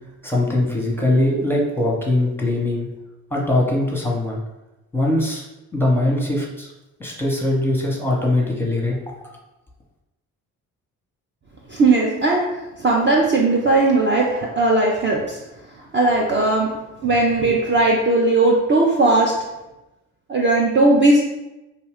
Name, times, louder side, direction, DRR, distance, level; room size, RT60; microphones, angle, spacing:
voice 1, 0.2-2.9 3.3-4.4 4.9-5.4 5.7-6.7 7.0-9.0, left 1 dB, 5° left, -2 dB, 0.9 m, -21 dB
voice 2, 11.7-12.5 12.8-15.4 15.9-16.7 17.0-19.3 20.3-21.2, right 2 dB, 30° right, -2 dB, 0.5 m, -17 dB
2.7 x 2.2 x 3.5 m, 0.99 s
hypercardioid pair, 45°, 40 cm